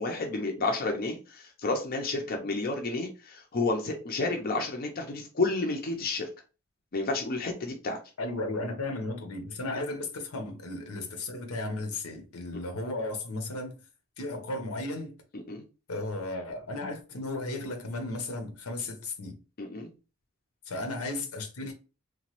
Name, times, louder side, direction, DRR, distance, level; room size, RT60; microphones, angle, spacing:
voice 1, 0.0-6.3 6.9-8.0 15.3-15.6 19.6-19.9, left 3 dB, 45° left, 0.5 m, -31 dB
voice 2, 8.2-13.8 14.2-15.1 15.9-19.4 20.7-21.7, left 2 dB, 80° left, 0.7 m, -35 dB
2.9 x 2.1 x 2.9 m
head